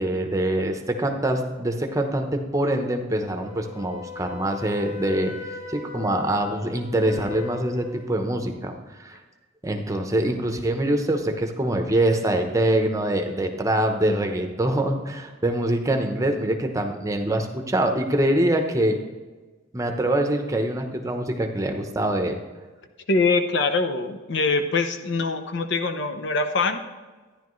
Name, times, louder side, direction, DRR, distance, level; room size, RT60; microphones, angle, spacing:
voice 1, 0.0-5.3 5.7-9.2 9.6-19.0 19.7-22.4, right 1 dB, 15° right, 4 dB, 0.8 m, -24 dB
Wind instrument woodwind instrument, 3.4-8.1, left 6 dB, 45° left, 2.0 m, -38 dB
voice 2, 23.1-26.8, left 3 dB, 65° left, 8 dB, 0.8 m, -23 dB
13.0 x 10.0 x 3.1 m, 1.3 s
head